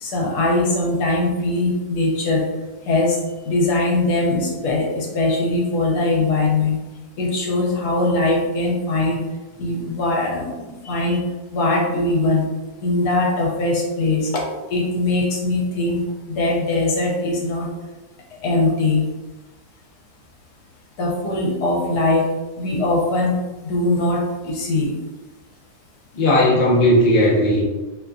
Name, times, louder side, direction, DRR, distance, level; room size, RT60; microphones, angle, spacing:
voice 1, 0.0-2.5 2.9-3.2 3.5-6.8 7.2-9.2 9.6-11.2 11.5-12.5 12.8-14.4 14.7-16.0 16.3-17.7 18.4-19.1 21.0-22.3 22.6-23.4 23.6-25.0, left 2 dB, 75° left, -2 dB, 1.2 m, -21 dB
voice 2, 26.1-27.6, left 1 dB, 60° left, -4 dB, 0.5 m, -16 dB
2.9 x 2.5 x 2.2 m, 1.2 s
omnidirectional pair, 1.8 m